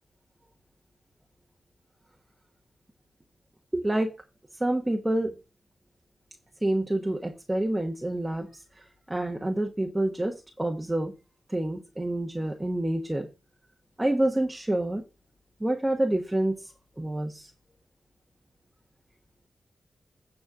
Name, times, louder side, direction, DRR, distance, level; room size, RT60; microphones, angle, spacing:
voice 1, 3.7-4.1 4.6-5.3 6.6-8.5 9.1-11.1 11.5-13.3 14.0-15.0 15.6-16.7 17.0-17.5, right 1 dB, 10° right, 1.3 m, -27 dB
9.5 x 4.4 x 7.3 m
wide cardioid pair, 105°, 0 cm